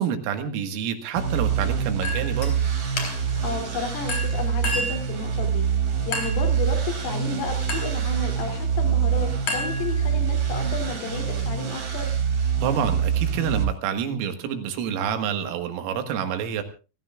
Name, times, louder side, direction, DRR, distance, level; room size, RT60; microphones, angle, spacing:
voice 1, 0.0-2.6 12.6-16.6, right 8 dB, 85° right, 7 dB, 4.4 m, -28 dB
sound 1, 1.2-13.6, right 7 dB, 50° right, 5.7 m, -25 dB
Chink clink, 2.0-2.5 3.0-3.4 4.1-5.1 6.1-6.5 7.7-8.0 9.5-10.3, left 1 dB, 40° left, 4.5 m, -30 dB
voice 2, 3.4-5.7 6.1-12.1, left 4 dB, 80° left, 4 dB, 5.6 m, -32 dB
28.5 x 16.5 x 2.4 m, 0.33 s
omnidirectional pair, 5.8 m